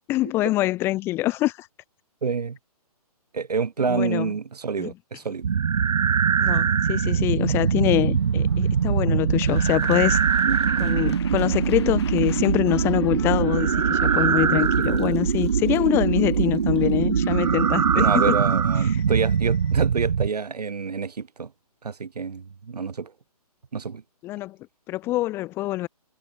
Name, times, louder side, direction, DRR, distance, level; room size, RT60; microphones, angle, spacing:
voice 1, 0.1-1.7 3.8-4.3 4.8-4.9 6.4-10.2 10.8-18.3 24.2-24.6 24.9-25.9, left 17 dB, 10° left, 0.8 m, -25 dB
voice 2, 2.2-2.6 3.3-5.5 10.5-10.8 17.9-21.5 21.8-23.1 23.7-24.0, right 5 dB, 80° right, 2.7 m, -28 dB
sound 1, 5.4-20.3, right 7 dB, 60° right, 3.3 m, -22 dB
sound 2, 8.0-19.9, left 10 dB, 45° left, 6.2 m, -47 dB
hypercardioid pair, 160°, 20 cm